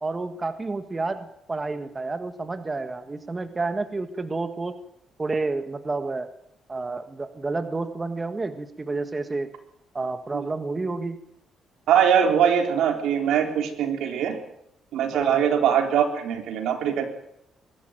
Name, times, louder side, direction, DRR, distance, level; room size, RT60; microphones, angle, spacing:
voice 1, 0.0-4.8 5.2-6.3 6.7-9.5 9.9-11.2 15.1-15.4, right 3 dB, 25° right, 8 dB, 1.7 m, -30 dB
voice 2, 11.9-14.4 14.9-17.1, right 8 dB, 80° right, 4 dB, 3.8 m, -22 dB
23.0 x 13.0 x 9.2 m, 0.78 s
cardioid pair, 90°, 0 cm